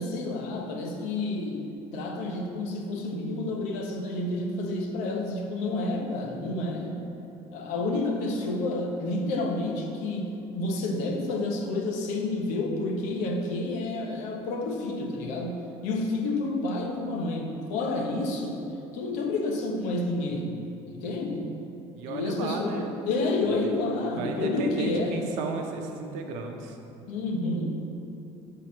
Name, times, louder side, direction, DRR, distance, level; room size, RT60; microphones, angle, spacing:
voice 1, 0.0-1.6 1.9-7.0 7.5-18.6 18.9-20.5 20.9-21.5 22.1-25.5 27.1-27.8, left 2 dB, 80° left, 2 dB, 0.9 m, -29 dB
voice 2, 21.9-22.9 23.6-23.7 24.0-26.8, right 4 dB, 80° right, 3 dB, 0.8 m, -34 dB
6.3 x 4.0 x 5.9 m, 2.8 s
cardioid pair, 175°, 12 cm